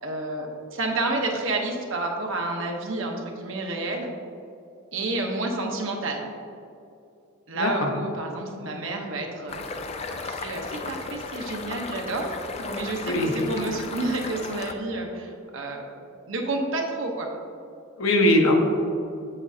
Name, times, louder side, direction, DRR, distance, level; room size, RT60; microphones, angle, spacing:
voice 1, 0.0-4.1 4.9-6.2 7.5-9.6 10.1-12.3 12.6-15.8 16.3-17.3, right 2 dB, 65° right, 1 dB, 0.9 m, -30 dB
voice 2, 7.5-7.9 13.0-13.3 18.0-18.6, left 1 dB, 85° left, 2 dB, 0.9 m, -20 dB
sound 1, 9.5-14.7, left 4 dB, 30° left, 0.3 m, -35 dB
7.5 x 7.0 x 2.7 m, 2.6 s
head